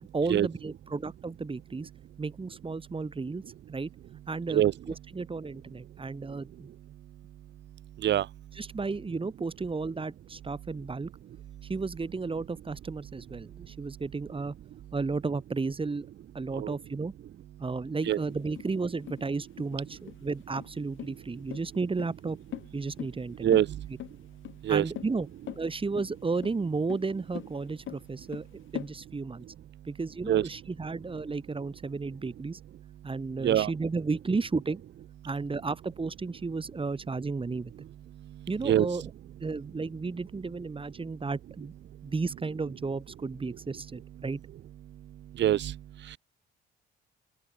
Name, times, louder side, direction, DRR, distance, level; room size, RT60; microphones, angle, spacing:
voice 1, 0.1-1.9 2.2-3.4 3.7-3.9 4.3-6.7 8.5-11.1 11.7-14.5 14.9-16.1 16.3-17.1 17.6-22.4 22.7-23.5 24.7-25.3 25.6-28.4 28.7-29.5 29.8-32.6 33.0-34.8 35.2-37.7 38.5-39.0 39.4-41.7 42.0-44.4, right 4 dB, 25° right, 5.2 m, -33 dB
voice 2, 8.0-8.3 16.5-16.7 18.1-18.2 23.4-23.9 24.6-24.8 30.3-30.4 33.4-33.7 38.2-38.9 45.3-46.2, right 11 dB, 65° right, 0.9 m, -25 dB
sound 1, 18.1-28.9, left 12 dB, 75° left, 3.3 m, -43 dB
open air
cardioid pair, 90°, 20 cm